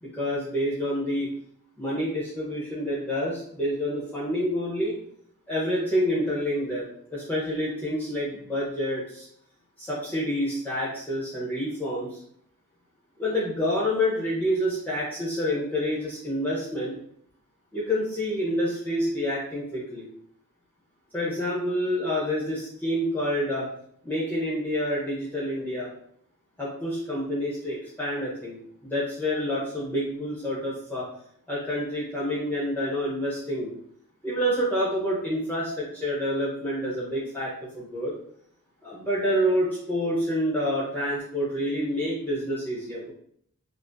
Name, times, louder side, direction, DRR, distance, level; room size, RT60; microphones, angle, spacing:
voice 1, 0.0-1.3 1.8-4.9 5.5-6.8 7.1-9.2 9.8-12.2 13.2-16.9 17.7-20.1 21.1-23.6 24.0-25.9 26.6-31.1 31.5-33.7 34.2-38.1 38.8-43.1, equal, 10° left, -7 dB, 0.8 m, -28 dB
5.9 x 2.0 x 2.6 m, 0.66 s
head